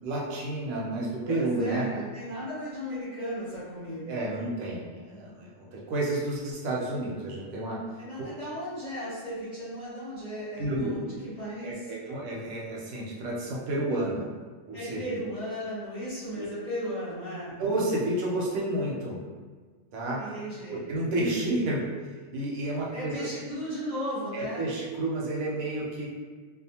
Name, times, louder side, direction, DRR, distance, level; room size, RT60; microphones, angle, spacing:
voice 1, 0.0-1.9 4.1-7.8 8.2-8.3 10.6-10.9 11.6-14.3 14.7-15.0 16.3-16.5 17.6-19.2 19.9-20.2 20.7-21.8 22.3-23.3 24.3-26.1, right 1 dB, 90° right, -3 dB, 1.1 m, -30 dB
voice 2, 1.2-4.3 8.0-11.1 11.4-11.9 14.7-17.6 20.2-20.8 22.9-24.7, equal, 30° left, -11 dB, 1.0 m, -36 dB
2.5 x 2.3 x 2.8 m, 1.5 s
omnidirectional pair, 1.4 m